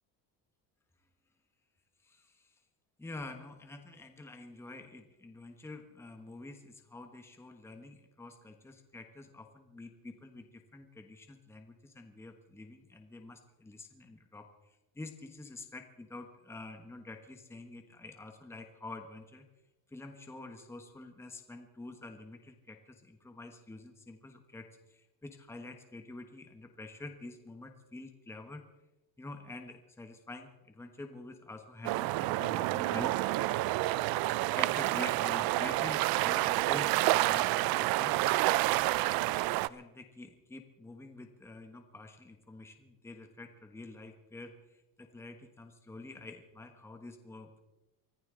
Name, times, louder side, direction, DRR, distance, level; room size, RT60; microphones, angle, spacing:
voice 1, 2.0-2.5 3.0-19.4 19.9-28.6 29.2-33.1 34.3-38.2 39.3-47.6, left 2 dB, 5° left, 5 dB, 1.2 m, -47 dB
sound 1, 31.8-39.7, right 18 dB, 65° right, 0.5 m, -29 dB
24.5 x 14.5 x 3.8 m, 0.96 s
cardioid pair, 155°, 39 cm